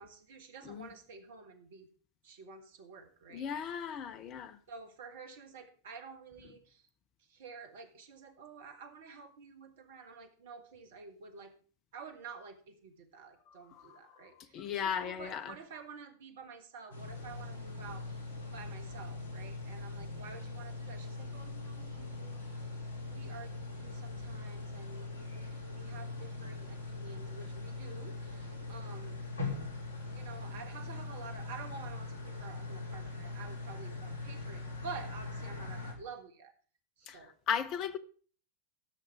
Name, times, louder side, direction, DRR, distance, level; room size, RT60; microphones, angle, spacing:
voice 1, 0.0-1.9 2.2-3.8 4.7-6.9 7.3-11.5 11.9-18.2 18.5-22.8 23.1-29.2 30.1-36.5 37.0-37.3, right 5 dB, 55° right, 1.4 m, -50 dB
voice 2, 3.3-4.6 13.7-14.0 14.4-15.5 37.1-37.2 37.5-38.0, left 8 dB, 35° left, 0.8 m, -36 dB
sound 1, 16.9-35.9, left 3 dB, 90° right, 2.2 m, -41 dB
17.0 x 6.5 x 3.5 m
figure-of-eight pair, 90°, 0 cm